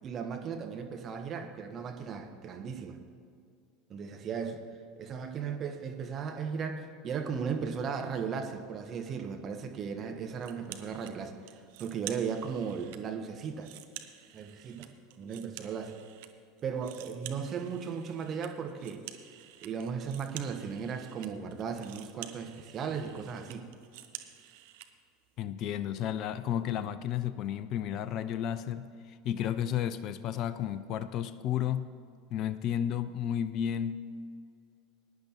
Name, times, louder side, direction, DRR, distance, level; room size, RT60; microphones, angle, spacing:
voice 1, 0.0-3.0 3.9-4.6 5.0-13.7 14.3-14.9 15.2-16.0 16.6-19.0 19.6-23.7, right 6 dB, 35° right, 5 dB, 1.2 m, -36 dB
sound 1, 10.4-11.1 11.5-13.0 13.4-16.3 16.6-24.9, right 13 dB, 60° right, 0.8 m, -49 dB
voice 2, 25.4-31.9 32.3-34.0, left 10 dB, 45° left, 14 dB, 0.4 m, -32 dB
20.5 x 10.0 x 3.0 m, 2.3 s
figure-of-eight pair, 75°, 0 cm